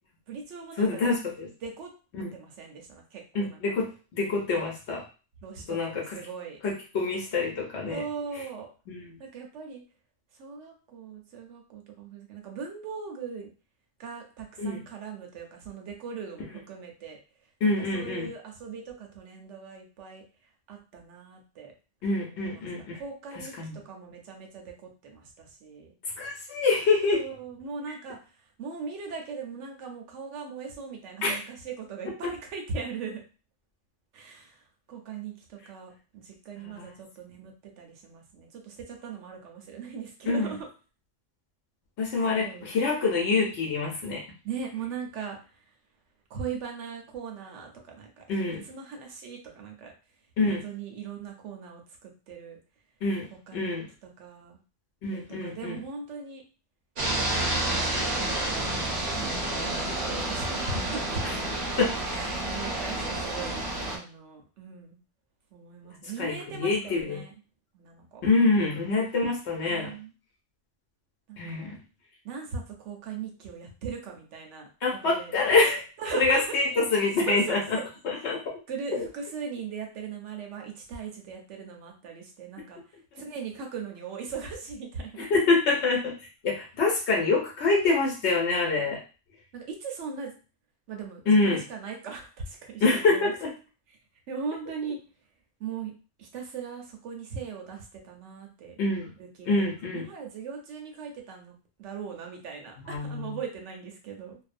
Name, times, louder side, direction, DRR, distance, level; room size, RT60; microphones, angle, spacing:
voice 1, 0.3-1.1 1.6-1.9 2.3-3.6 4.5-4.6 5.4-6.6 7.9-8.7 9.2-9.8 10.4-13.5 14.0-17.2 17.6-20.2 20.7-21.7 22.2-22.7 22.9-25.9 27.1-28.3 28.6-33.2 34.1-34.6 34.9-40.7 42.4-42.7 44.4-45.7 46.3-49.9 50.4-52.6 53.3-53.8 54.0-54.6 55.1-56.4 57.0-58.7 59.1-61.4 62.0-63.6 63.9-65.0 65.5-67.3 67.7-68.2 69.7-70.1 71.3-71.7 72.2-75.3 76.0-76.6 77.3-77.8 78.1-78.4 78.7-85.3 89.5-90.3 90.9-93.3 93.9-94.0 94.3-95.0 95.6-95.9 96.2-98.8 99.2-104.4, right 5 dB, 85° right, 1 dB, 1.0 m, -39 dB
voice 2, 0.8-1.5 2.2-2.3 3.3-5.0 5.7-6.0 6.6-8.0 8.9-9.1 14.6-14.8 17.6-18.3 22.0-23.0 23.6-23.8 26.2-27.2 31.2-31.4 32.2-32.3 36.6-36.9 40.3-40.5 42.0-44.2 48.3-48.6 50.4-50.6 53.0-53.3 53.5-53.9 55.0-55.7 61.2-61.3 61.8-61.9 66.2-67.2 68.2-69.9 71.4-71.8 74.8-75.8 76.1-77.6 78.0-78.4 85.2-86.1 86.4-89.0 91.3-91.6 92.8-93.5 98.8-99.1 99.5-100.1 102.8-103.4, left 3 dB, 70° left, -1 dB, 0.9 m, -26 dB
sound 1, 57.0-64.0, right 1 dB, 50° right, 0.7 m, -29 dB
2.5 x 2.1 x 2.5 m, 0.35 s
omnidirectional pair, 1.2 m